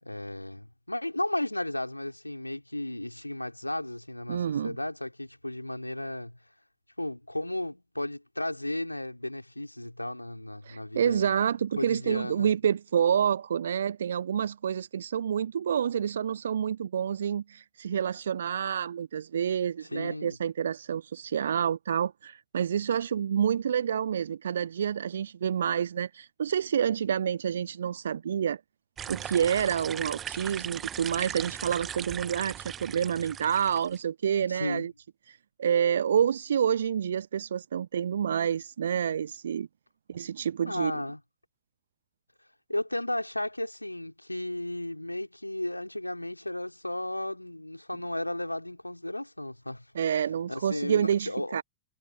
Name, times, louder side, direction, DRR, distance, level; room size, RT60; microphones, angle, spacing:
voice 1, 0.0-6.4 7.0-11.4 11.8-12.5 19.9-20.4 34.5-34.9 40.7-41.2 42.7-49.9 50.5-51.6, left 1 dB, 85° left, 4.4 m, -34 dB
voice 2, 4.3-4.8 10.6-28.6 29.1-34.9 35.3-39.7 40.1-40.9 49.9-51.6, right 8 dB, 65° right, 1.1 m, -28 dB
sound 1, 29.0-34.0, right 9 dB, 25° right, 1.5 m, -38 dB
figure-of-eight pair, 90°, 0 cm